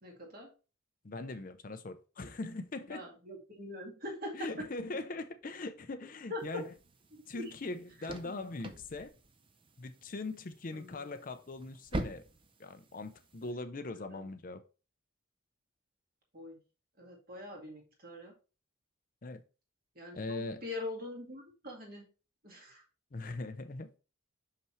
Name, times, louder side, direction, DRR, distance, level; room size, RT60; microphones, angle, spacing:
voice 1, 0.0-0.5 2.9-4.7 6.3-6.6 7.3-7.4 10.7-11.0 13.4-13.5 14.1-14.3 16.3-16.6 17.0-18.3 20.0-22.1 22.4-22.8, left 2 dB, 45° right, 2.0 m, -43 dB
voice 2, 1.0-3.0 4.3-6.7 7.3-9.1 9.8-12.2 12.6-14.6 19.2-19.4 20.1-20.6 23.1-23.9, left 2 dB, 40° left, 0.5 m, -41 dB
sound 1, 6.4-13.5, right 1 dB, 25° right, 0.5 m, -45 dB
6.0 x 5.6 x 3.1 m
head